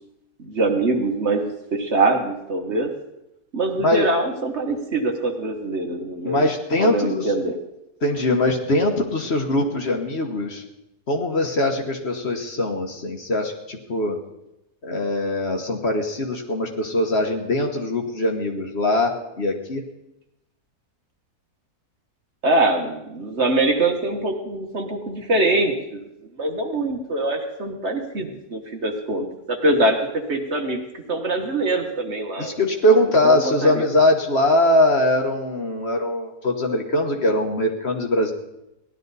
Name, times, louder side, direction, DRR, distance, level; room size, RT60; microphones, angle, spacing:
voice 1, 0.4-2.9 3.5-6.4 6.8-7.5 22.4-26.0 26.4-32.6 33.2-33.9, right 2 dB, 45° right, 3 dB, 1.4 m, -23 dB
voice 2, 6.2-7.3 8.0-10.6 11.1-14.2 14.8-19.8 32.4-38.3, left 1 dB, 45° left, 2 dB, 1.4 m, -21 dB
17.5 x 11.5 x 4.0 m, 0.89 s
omnidirectional pair, 1.7 m